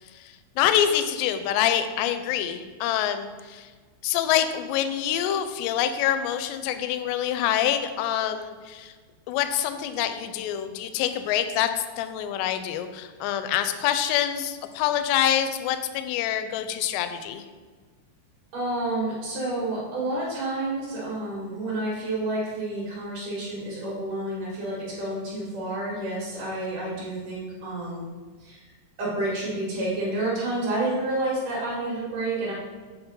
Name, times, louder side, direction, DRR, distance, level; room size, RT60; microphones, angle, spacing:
voice 1, 0.6-3.7 4.0-8.9 9.3-17.4, left 10 dB, 85° left, 9 dB, 2.5 m, -26 dB
voice 2, 18.5-28.1 28.4-28.6 29.0-32.5, right 2 dB, 55° right, -6 dB, 2.6 m, -29 dB
8.0 x 3.9 x 5.4 m, 1.5 s
omnidirectional pair, 5.2 m